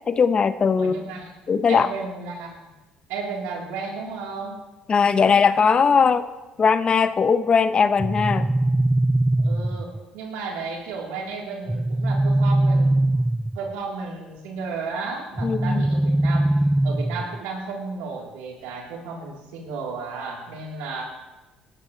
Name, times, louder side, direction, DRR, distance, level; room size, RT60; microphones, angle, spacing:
voice 1, 0.1-1.0 1.5-1.9 4.9-6.3 6.6-8.5 15.4-15.8, left 6 dB, 40° left, 12 dB, 0.8 m, -19 dB
voice 2, 0.8-1.3 1.7-2.7 3.1-4.6 9.4-13.0 13.5-16.5 16.8-21.0, right 4 dB, 85° right, -1 dB, 3.3 m, -33 dB
sound 1, 8.0-10.0 11.7-13.7 15.4-17.4, right 1 dB, 10° right, 0.3 m, -21 dB
18.5 x 12.5 x 3.1 m, 1.1 s
supercardioid pair, 75°, 3 cm